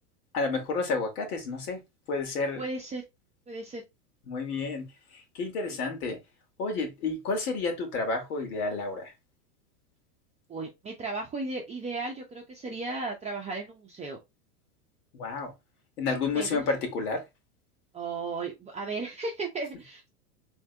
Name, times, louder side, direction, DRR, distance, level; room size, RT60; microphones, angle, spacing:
voice 1, 0.3-1.8 2.1-2.6 4.3-6.2 6.6-9.1 15.1-15.5 16.0-17.2, left 3 dB, 75° left, 2.1 m, -30 dB
voice 2, 2.6-3.0 3.5-3.8 10.5-14.2 16.3-16.7 17.9-20.1, right 3 dB, 15° right, 0.7 m, -35 dB
3.5 x 3.4 x 3.3 m
hypercardioid pair, 120°, 46 cm